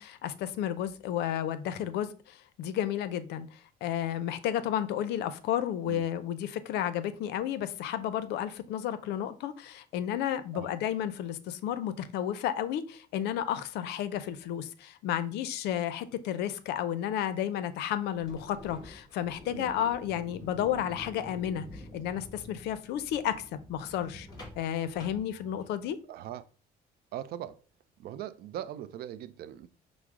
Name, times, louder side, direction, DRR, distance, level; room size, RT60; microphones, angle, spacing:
voice 1, 0.0-24.3 24.5-26.0, left 10 dB, 80° left, 0.5 m, -32 dB
sound 1, 18.2-25.9, left 1 dB, 25° left, 1.5 m, -48 dB
voice 2, 26.1-26.5 27.1-27.6 28.0-29.7, right 11 dB, 65° right, 0.4 m, -40 dB
6.0 x 2.0 x 3.5 m
cardioid pair, 110°, 17 cm